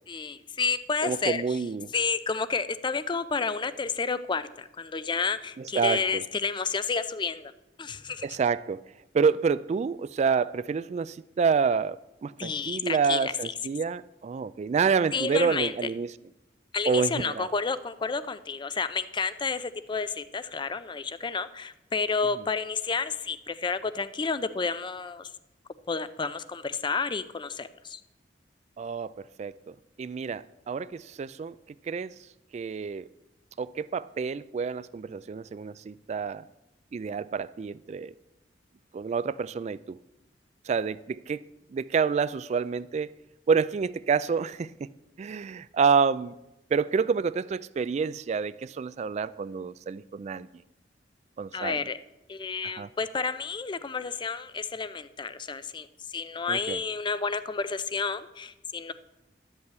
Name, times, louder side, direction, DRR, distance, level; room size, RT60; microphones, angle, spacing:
voice 1, 0.1-1.4 1.9-7.5 7.8-8.3 12.4-13.3 15.1-15.7 16.7-25.3 25.9-28.0 51.5-52.0 52.3-58.9, left 5 dB, 25° left, 0.5 m, -30 dB
voice 2, 1.0-1.9 5.6-6.2 8.2-8.8 9.1-12.0 12.2-16.1 16.9-17.5 28.8-29.1 29.4-31.6 31.9-32.1 32.5-33.1 33.6-36.4 36.9-38.1 38.9-40.0 40.7-41.4 41.7-43.1 43.5-44.7 45.2-46.3 46.7-50.5 51.4-51.8 52.6-52.9 56.5-56.8, right 5 dB, 40° right, 0.3 m, -28 dB
12.0 x 5.5 x 8.0 m
head